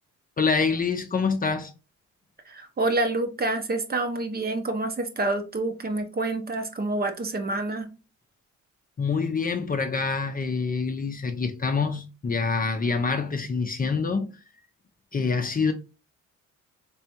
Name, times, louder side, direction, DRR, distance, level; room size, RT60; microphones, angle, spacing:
voice 1, 0.4-1.7 9.0-14.3 15.1-15.7, left 4 dB, 30° left, 0.6 m, -26 dB
voice 2, 2.5-7.9, right 2 dB, 30° right, 0.8 m, -27 dB
3.4 x 3.3 x 2.9 m
cardioid pair, 90°, 30 cm